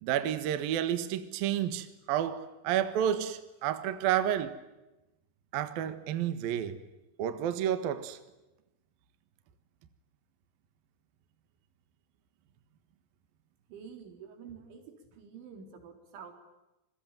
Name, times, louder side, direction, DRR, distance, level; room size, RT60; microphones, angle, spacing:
voice 1, 0.0-4.6 5.5-6.8 7.2-8.2, right 10 dB, 60° right, 3.0 m, -30 dB
voice 2, 13.7-16.3, right 6 dB, 85° right, 6.4 m, -48 dB
27.5 x 22.0 x 9.1 m
omnidirectional pair, 5.3 m